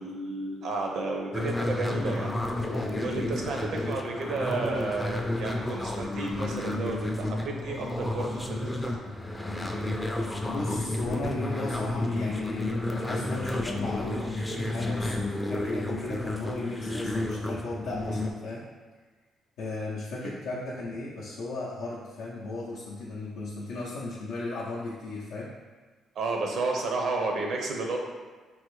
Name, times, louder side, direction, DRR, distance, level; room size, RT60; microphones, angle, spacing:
voice 1, 0.0-2.7 3.0-9.0 20.2-20.3 26.2-28.0, right 3 dB, 70° right, 1 dB, 0.5 m, -32 dB
sound 1, 1.3-18.3, left 1 dB, 10° left, 0.3 m, -31 dB
voice 2, 2.6-3.9 10.4-18.6 19.6-25.5, left 2 dB, 85° left, -7 dB, 0.5 m, -36 dB
3.4 x 2.0 x 3.0 m, 1.4 s
cardioid pair, 90°, 0 cm